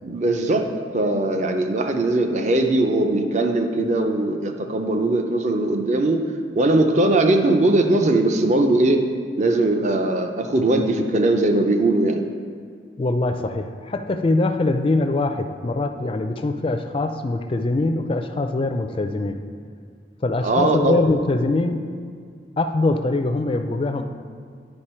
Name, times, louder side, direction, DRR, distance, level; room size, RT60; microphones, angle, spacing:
voice 1, 0.0-0.7 0.9-6.2 6.5-9.0 9.4-12.2 20.4-21.0, right 2 dB, 40° right, 5 dB, 0.5 m, -20 dB
voice 2, 13.0-19.4 20.2-21.8 22.6-24.0, left 2 dB, 30° left, 7 dB, 0.3 m, -23 dB
9.7 x 5.3 x 4.3 m, 2.1 s
head